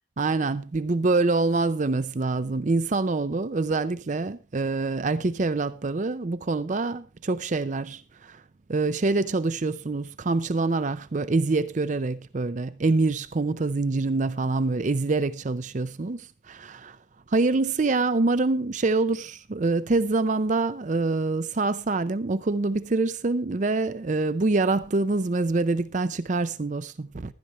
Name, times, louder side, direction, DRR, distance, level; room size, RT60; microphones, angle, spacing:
voice 1, 0.2-8.4 8.7-17.0 17.3-27.3, right 3 dB, 40° right, 0.5 m, -25 dB
15.5 x 12.0 x 3.0 m
head